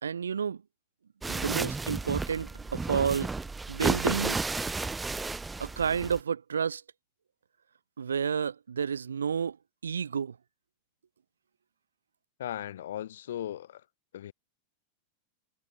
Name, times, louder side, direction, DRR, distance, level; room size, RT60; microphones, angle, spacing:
voice 1, 0.0-0.6 1.3-3.3 3.7-4.4 5.6-6.8 8.0-9.6 9.8-10.4, right 7 dB, 70° right, 0.9 m, -30 dB
sound 1, 1.2-6.2, right 3 dB, 10° right, 0.7 m, -32 dB
voice 2, 12.4-13.9 14.1-14.3, left 11 dB, 60° left, 1.9 m, -37 dB
figure-of-eight pair, 90°, 0 cm